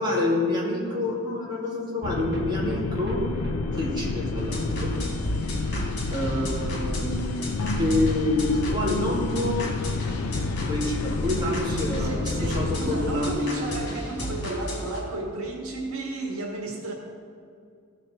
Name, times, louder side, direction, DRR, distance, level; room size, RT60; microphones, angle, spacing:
voice 1, 0.0-3.3 3.7-4.9 6.1-7.5 7.8-9.7 10.7-13.3, left 1 dB, 20° right, -5 dB, 2.6 m, -27 dB
sound 1, 2.0-13.4, left 3 dB, 90° left, 0.5 m, -30 dB
sound 2, 2.3-8.8 9.0-9.1 9.4-9.5, equal, 55° right, 1.5 m, -45 dB
sound 3, 4.3-15.0, equal, 50° left, 2.6 m, -34 dB
voice 2, 12.0-16.9, right 2 dB, 85° right, 0 dB, 1.7 m, -33 dB
16.5 x 6.4 x 4.4 m, 2.3 s
head